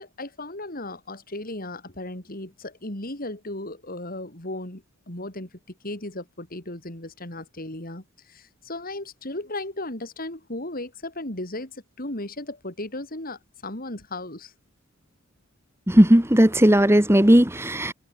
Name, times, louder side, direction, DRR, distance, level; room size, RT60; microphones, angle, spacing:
voice 1, 0.0-5.5 5.8-14.5, left 2 dB, 45° left, 4.9 m, -36 dB
voice 2, 15.9-17.9, equal, 10° right, 1.7 m, -16 dB
head